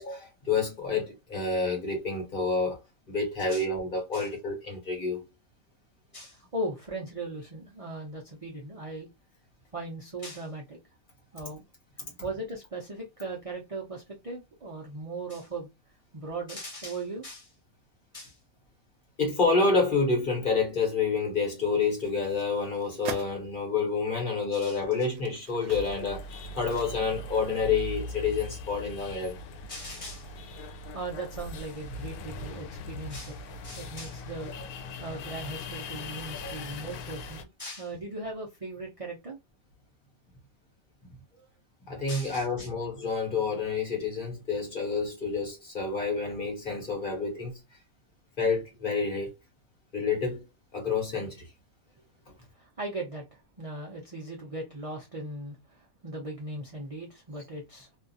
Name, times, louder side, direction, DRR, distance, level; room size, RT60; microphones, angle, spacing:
voice 1, 0.0-2.8 3.1-5.3 19.2-29.4 36.3-36.6 41.9-47.6 48.4-49.3 49.9-50.4 50.7-51.5, left 4 dB, 40° left, 1.1 m, -28 dB
voice 2, 6.1-9.1 9.7-10.8 11.3-11.6 12.2-15.7 16.1-17.5 18.1-18.4 24.5-24.8 29.7-30.3 30.9-34.5 35.0-39.4 42.1-42.7 52.6-57.9, right 2 dB, 50° right, 0.4 m, -38 dB
sound 1, 21.8-23.4 24.0-24.1 24.7-27.4 27.7-27.8, right 6 dB, 75° right, 1.0 m, -44 dB
sound 2, 25.7-37.4, left 1 dB, 90° left, 1.1 m, -40 dB
2.6 x 2.4 x 2.6 m
omnidirectional pair, 1.5 m